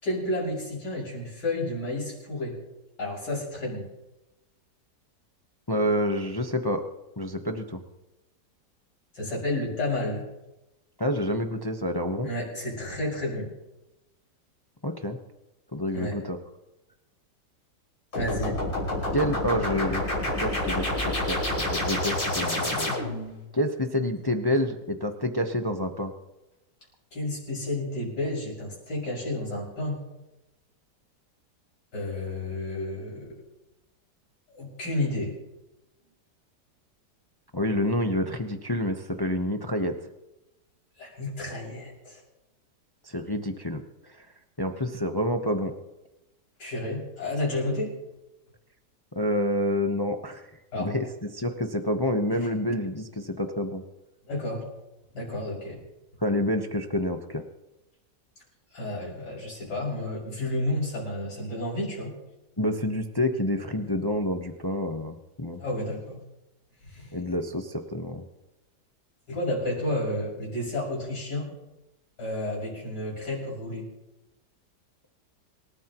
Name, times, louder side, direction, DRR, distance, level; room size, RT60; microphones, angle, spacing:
voice 1, 0.0-2.6 3.0-3.9 9.1-10.2 12.2-13.5 15.9-16.2 18.1-18.6 27.1-30.0 31.9-33.4 34.5-35.3 41.0-42.2 46.6-47.9 50.7-50.9 54.3-54.7 55.1-55.8 58.7-62.1 65.6-66.2 66.9-67.2 69.3-71.5 72.2-73.9, left 1 dB, 75° left, -5 dB, 6.9 m, -31 dB
voice 2, 5.7-6.8 7.2-7.8 11.0-12.3 14.8-15.2 15.7-16.4 19.1-22.9 23.5-26.1 37.5-39.9 43.0-44.2 44.6-45.7 49.2-50.4 50.8-53.8 56.2-57.4 62.6-65.6 67.1-68.2, left 1 dB, 20° left, 5 dB, 0.7 m, -28 dB
sound 1, 18.1-23.3, left 1 dB, 50° left, 6.3 m, -28 dB
26.5 x 13.5 x 3.0 m, 0.97 s
omnidirectional pair, 1.9 m